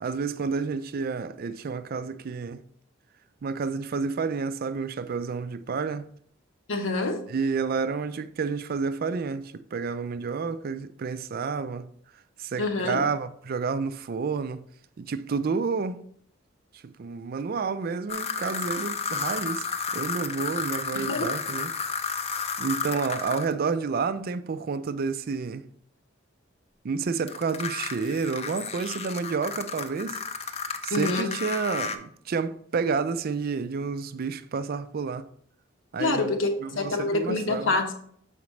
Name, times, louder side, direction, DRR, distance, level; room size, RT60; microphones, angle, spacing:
voice 1, 0.0-2.6 3.4-6.1 7.3-11.9 12.4-14.6 15.0-16.0 16.8-19.7 19.9-21.7 22.6-25.6 26.8-30.2 30.8-35.3 35.9-36.3 36.6-37.7, right 5 dB, 50° right, 0.4 m, -30 dB
voice 2, 6.7-7.2 12.6-13.0 20.9-21.3 30.9-31.4 36.0-37.9, left 2 dB, 75° left, 0.9 m, -26 dB
sound 1, 18.1-23.5 27.3-32.0, left 5 dB, 30° left, 0.5 m, -32 dB
7.0 x 5.0 x 3.2 m
head